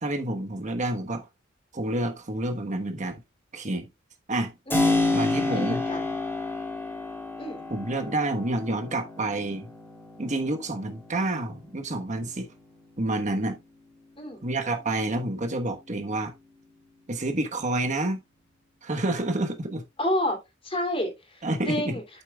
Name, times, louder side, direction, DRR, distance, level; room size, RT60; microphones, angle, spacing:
voice 1, 0.0-1.2 1.7-3.2 3.5-3.9 4.3-4.5 5.1-5.8 7.7-9.7 10.2-12.5 13.0-13.6 14.4-16.3 17.1-18.2 18.8-19.8 21.4-21.9, right 2 dB, 40° right, 1.2 m, -28 dB
voice 2, 4.7-5.2 5.5-6.1 7.4-7.6 14.2-14.4 20.0-20.4 20.6-22.0, left 1 dB, 30° left, 2.8 m, -30 dB
Keyboard (musical), 4.7-13.3, left 2 dB, 10° left, 3.4 m, -30 dB
8.4 x 8.4 x 2.3 m
head